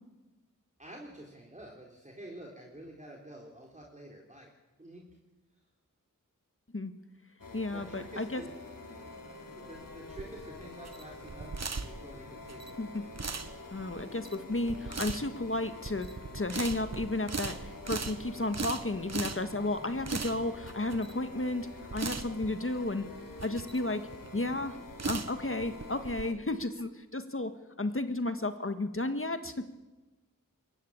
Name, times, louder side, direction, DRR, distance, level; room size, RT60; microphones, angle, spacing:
voice 1, 0.8-4.5 4.8-5.1 7.7-8.5 9.6-12.8, right 1 dB, 20° right, -1 dB, 3.6 m, -48 dB
sound 1, 7.4-26.3, left 2 dB, 75° left, 3.0 m, -47 dB
voice 2, 7.5-8.4 12.8-13.0 13.7-23.0 23.4-24.1 24.3-24.8 25.1-29.5, left 2 dB, 40° left, 9 dB, 1.6 m, -33 dB
sound 2, 9.7-26.2, right 4 dB, 50° right, 1.2 m, -40 dB
22.0 x 18.0 x 8.7 m, 1.1 s
wide cardioid pair, 55°, 34 cm